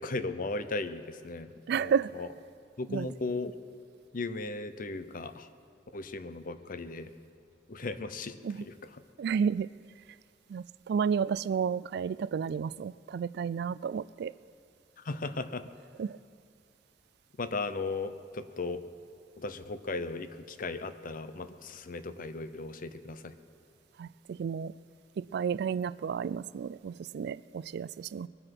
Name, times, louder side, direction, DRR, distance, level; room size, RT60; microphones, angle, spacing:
voice 1, 0.0-2.3 2.8-3.5 4.1-5.5 5.9-7.1 7.7-8.7 15.0-15.6 17.4-18.8 19.4-23.3, left 3 dB, 50° left, 11 dB, 0.7 m, -36 dB
voice 2, 1.7-2.1 2.9-3.1 8.4-8.6 9.2-9.7 10.5-14.3 16.0-16.2 24.0-24.7 25.2-28.3, right 7 dB, 60° right, 20 dB, 0.3 m, -31 dB
21.5 x 7.9 x 6.0 m, 2.4 s
head